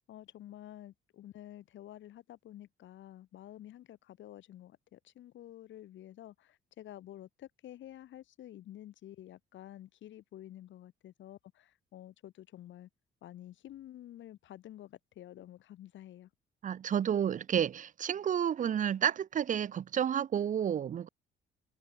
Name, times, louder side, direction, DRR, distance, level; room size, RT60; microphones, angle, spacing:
voice 1, 0.1-12.9 13.2-16.3, left 12 dB, 70° left, 1.2 m, -50 dB
voice 2, 16.6-21.1, right 9 dB, 40° right, 0.5 m, -31 dB
cardioid pair, 90°, 20 cm